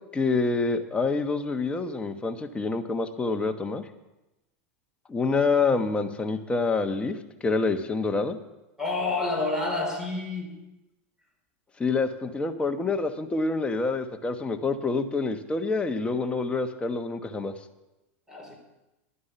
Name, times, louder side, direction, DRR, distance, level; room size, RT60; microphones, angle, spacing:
voice 1, 0.1-3.8 5.1-7.2 7.4-8.4 11.8-17.5, left 3 dB, 15° left, 6 dB, 1.2 m, -27 dB
voice 2, 8.8-10.6 18.3-18.6, left 3 dB, 10° right, 1 dB, 3.9 m, -29 dB
11.5 x 9.5 x 6.8 m, 0.97 s
hypercardioid pair, 105°, 7 cm